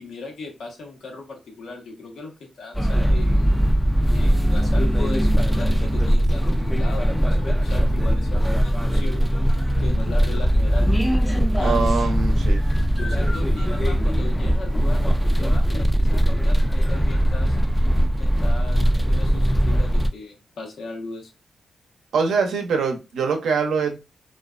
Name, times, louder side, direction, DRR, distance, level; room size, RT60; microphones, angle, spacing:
voice 1, 0.0-3.5 4.1-9.2 9.8-10.9 11.6-12.2 12.9-17.6 18.2-21.3, left 3 dB, 75° left, 0 dB, 0.9 m, -37 dB
sound 1, 2.7-20.1, equal, 5° left, 0.4 m, -20 dB
voice 2, 11.6-12.6 22.1-24.0, right 5 dB, 85° right, 4 dB, 0.6 m, -23 dB
2.4 x 2.2 x 2.4 m, 0.27 s
cardioid pair, 60°, 0 cm